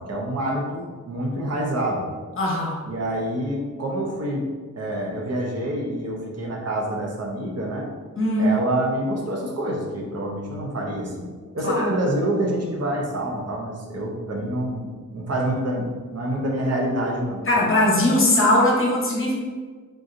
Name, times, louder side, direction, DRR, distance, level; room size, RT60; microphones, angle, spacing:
voice 1, 0.0-2.1 2.9-4.5 4.8-7.9 8.4-17.4, right 1 dB, 50° right, -1 dB, 0.7 m, -27 dB
voice 2, 2.4-2.8 8.2-8.5 11.6-11.9 17.5-19.4, left 1 dB, 40° left, -3 dB, 0.9 m, -20 dB
3.7 x 2.7 x 2.5 m, 1.5 s
wide cardioid pair, 100°, 33 cm